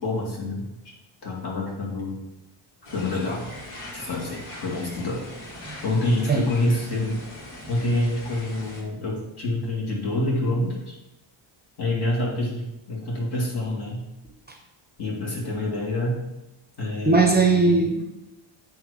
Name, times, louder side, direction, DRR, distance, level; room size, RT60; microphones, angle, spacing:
voice 1, 0.0-0.9 1.2-2.2 2.9-3.5 3.9-5.2 5.8-7.2 7.7-10.9 11.8-14.0 15.0-16.2 16.8-17.8, left 1 dB, 55° left, -4 dB, 2.3 m, -27 dB
sound 1, 2.8-8.8, equal, 80° left, 2.1 m, -41 dB
voice 2, 17.0-18.1, right 3 dB, 20° right, 2 dB, 0.6 m, -19 dB
8.9 x 3.2 x 4.9 m, 0.99 s
wide cardioid pair, 160°, 48 cm